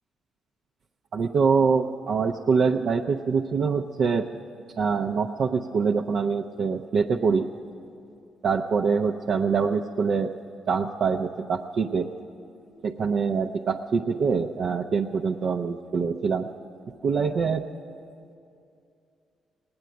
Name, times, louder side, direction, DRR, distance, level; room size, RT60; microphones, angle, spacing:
voice 1, 1.1-4.3 4.8-7.5 8.4-10.3 10.7-12.1 12.8-16.5 17.0-17.7, right 5 dB, 60° right, 1 dB, 0.5 m, -24 dB
18.0 x 8.7 x 9.2 m, 2.5 s
cardioid pair, 90°, 0 cm